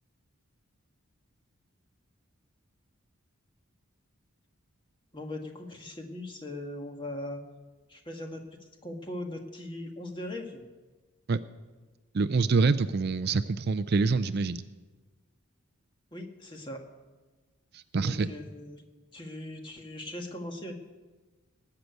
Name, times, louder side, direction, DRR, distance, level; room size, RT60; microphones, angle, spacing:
voice 1, 5.1-7.4 7.9-10.7 16.1-16.8 18.0-18.8 19.1-20.7, left 1 dB, 20° left, 3 dB, 1.6 m, -39 dB
voice 2, 12.1-14.6 17.7-18.3, right 4 dB, 45° right, 13 dB, 0.4 m, -26 dB
19.5 x 6.7 x 9.3 m, 1.3 s
head